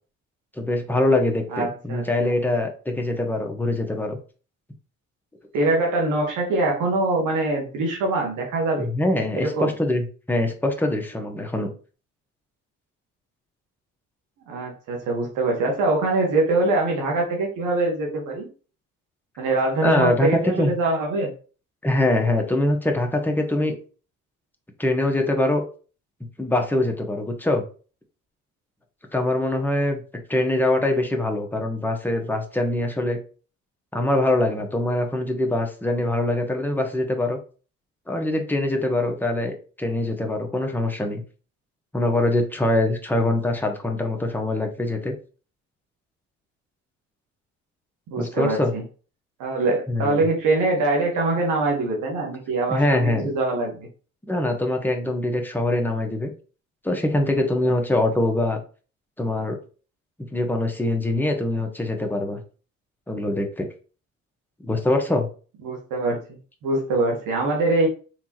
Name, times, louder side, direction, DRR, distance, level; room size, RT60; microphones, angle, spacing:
voice 1, 0.6-4.2 8.8-11.7 19.8-20.3 20.6-20.7 21.8-23.7 24.8-25.6 26.4-27.6 29.1-30.0 30.3-33.2 33.9-37.4 38.1-41.2 41.9-45.1 48.2-48.7 49.9-50.2 52.7-53.3 54.3-56.3 56.8-58.6 59.2-59.5 60.3-62.4 63.1-63.7 64.6-65.3, left 1 dB, 5° left, 2 dB, 1.2 m, -23 dB
voice 2, 1.5-2.4 5.5-8.9 9.3-9.7 14.5-18.5 19.4-21.3 48.1-48.8 49.4-53.9 65.6-67.9, right 2 dB, 85° right, 1 dB, 1.4 m, -23 dB
4.6 x 3.5 x 2.9 m, 0.37 s
cardioid pair, 90°, 30 cm